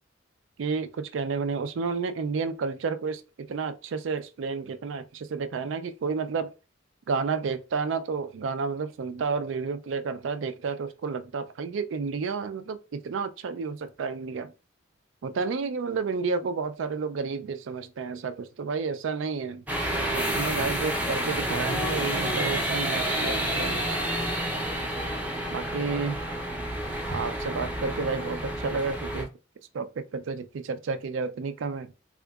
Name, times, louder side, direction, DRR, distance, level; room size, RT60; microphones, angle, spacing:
voice 1, 0.6-6.5 7.1-14.5 15.2-19.6 20.1-23.9 25.5-26.2 27.1-29.3 29.7-31.9, right 5 dB, 75° right, 0.4 m, -31 dB
sound 1, 19.7-29.2, equal, 10° right, 0.6 m, -29 dB
3.5 x 2.8 x 2.3 m
head